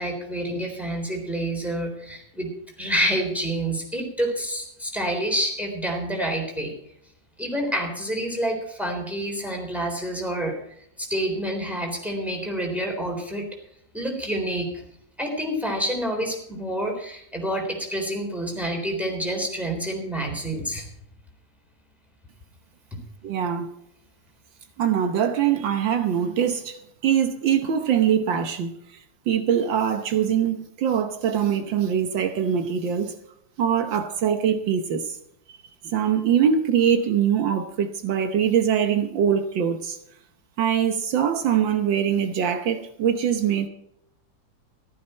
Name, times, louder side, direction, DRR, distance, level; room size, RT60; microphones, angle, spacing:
voice 1, 0.0-2.5 2.8-6.7 7.4-10.6 11.0-13.5 13.9-14.7 15.2-20.9 22.9-23.0, right 1 dB, ahead, 3.7 m, -28 dB
voice 2, 23.2-23.7 24.8-28.7 29.3-33.1 33.6-35.2 35.8-40.0 40.6-43.7, right 8 dB, 75° right, 1.7 m, -23 dB
15.0 x 13.0 x 4.4 m
omnidirectional pair, 2.1 m